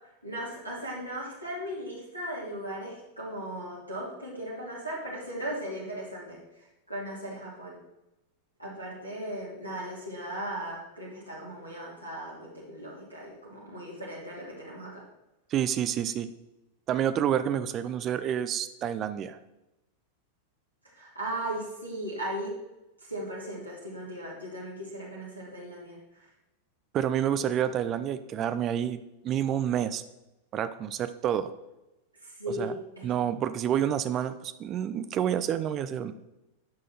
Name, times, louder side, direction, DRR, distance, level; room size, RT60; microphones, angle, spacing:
voice 1, 0.2-6.4 6.9-7.8 8.6-15.0 20.9-22.5 23.0-26.3 32.2-33.1, right 1 dB, 90° left, -6 dB, 2.8 m, -37 dB
voice 2, 15.5-16.3 16.9-19.4 26.9-29.0 29.2-30.0 30.5-31.5 32.6-32.7 33.0-36.1, right 9 dB, 30° right, 12 dB, 0.6 m, -28 dB
10.5 x 6.4 x 4.4 m, 0.95 s
figure-of-eight pair, 90°, 0 cm